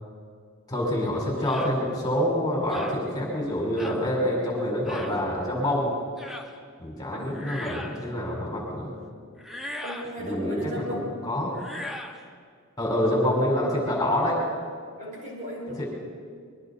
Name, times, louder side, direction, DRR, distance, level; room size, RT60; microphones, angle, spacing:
voice 1, 0.7-5.9 6.8-8.9 10.2-11.5 12.8-14.4 15.8-16.0, left 1 dB, 20° left, -3 dB, 5.4 m, -26 dB
sound 1, 1.4-1.7 2.7-3.0 3.8-4.0 4.8-5.2 6.2-6.5 7.3-8.0 9.4-10.1 11.5-12.2, left 1 dB, ahead, 1.5 m, -38 dB
voice 2, 7.1-7.4 9.8-11.1 13.2-13.3 15.0-15.9, equal, 35° right, -3 dB, 6.2 m, -36 dB
27.0 x 22.5 x 4.3 m, 2.1 s
head